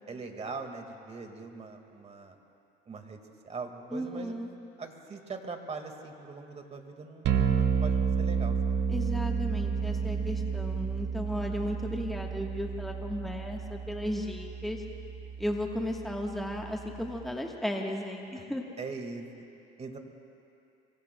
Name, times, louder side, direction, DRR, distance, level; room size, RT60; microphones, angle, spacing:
voice 1, 0.1-2.4 2.9-3.2 3.4-8.8 18.4-18.5 18.8-19.4 19.8-20.0, right 4 dB, 35° right, 5 dB, 1.8 m, -41 dB
voice 2, 3.9-4.5 8.9-14.8 15.4-18.6, equal, ahead, 1 dB, 1.3 m, -35 dB
sound 1, 7.2-17.3, right 6 dB, 65° right, 1.3 m, -31 dB
25.0 x 24.5 x 2.2 m, 2.7 s
supercardioid pair, 95°, 20 cm